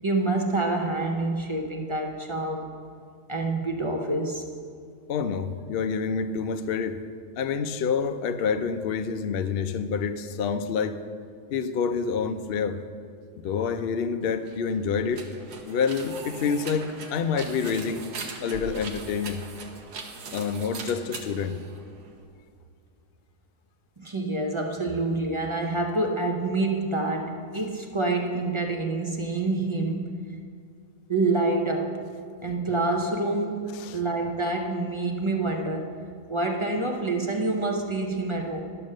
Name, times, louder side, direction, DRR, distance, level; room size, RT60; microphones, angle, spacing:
voice 1, 0.0-2.7 3.3-4.5 24.0-30.2 31.1-32.0 32.4-36.0 36.3-38.6, right 2 dB, 50° right, 2 dB, 0.3 m, -27 dB
voice 2, 5.1-7.0 7.4-11.0 11.5-12.8 13.4-15.3 15.7-18.1 18.4-19.4 20.3-21.6 33.7-34.0, left 6 dB, 75° left, 8 dB, 0.5 m, -27 dB
sound 1, 14.4-22.3, right 4 dB, 85° right, 1.5 m, -41 dB
11.0 x 6.8 x 6.4 m, 2.3 s
omnidirectional pair, 1.6 m